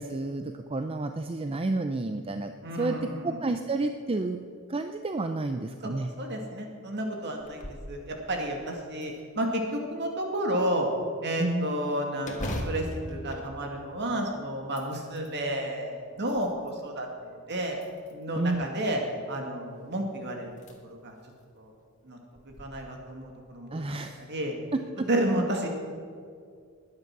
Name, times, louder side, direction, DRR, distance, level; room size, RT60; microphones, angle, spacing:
voice 1, 0.0-2.5 2.8-3.0 3.2-4.4 4.7-6.1 11.4-11.7 18.3-18.6 23.7-24.2 24.7-25.1, right 2 dB, 25° right, 7 dB, 0.5 m, -30 dB
voice 2, 2.6-3.4 5.8-10.9 11.2-17.8 18.1-19.0 19.3-20.6 20.8-21.1 21.6-21.7 22.0-22.2 22.4-23.8 24.3-24.6 25.1-25.7, right 1 dB, 55° right, 2 dB, 2.3 m, -31 dB
sound 1, 7.4-7.9 8.4-8.5 9.0-9.8 12.2-14.2 14.6-15.4 16.0-16.8 17.7-18.4 19.9-20.0 20.5-20.7 21.2-21.3 22.4-22.6, left 1 dB, 35° left, 1.7 m, -38 dB
20.0 x 9.7 x 6.0 m, 2.2 s
head